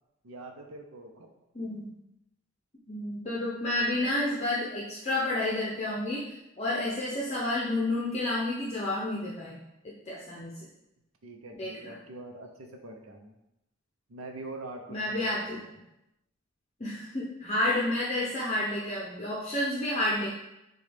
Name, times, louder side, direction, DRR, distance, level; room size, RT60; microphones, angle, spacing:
voice 1, 0.2-1.3 11.2-13.4 14.1-15.7, right 2 dB, 80° right, 3 dB, 0.7 m, -44 dB
voice 2, 1.5-1.9 2.9-6.3 6.6-9.6 9.8-10.5 11.5-11.9 14.9-15.6 16.8-20.4, left 1 dB, 30° left, -5 dB, 0.7 m, -30 dB
6.4 x 2.3 x 3.4 m, 0.88 s
head